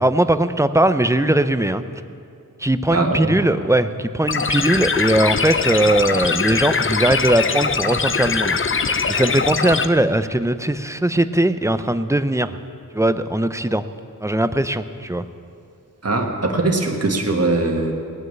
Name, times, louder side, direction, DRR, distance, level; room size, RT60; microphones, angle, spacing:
voice 1, 0.0-1.8 2.6-8.6 9.1-12.6 12.9-13.8 14.2-15.3, right 1 dB, 10° right, 11 dB, 0.5 m, -19 dB
voice 2, 2.9-3.3 16.0-17.9, right 2 dB, 45° right, 2 dB, 1.6 m, -21 dB
sound 1, 4.3-9.9, left 5 dB, 35° left, 0.6 m, -22 dB
19.0 x 6.4 x 8.7 m, 2.4 s
wide cardioid pair, 85°, 35 cm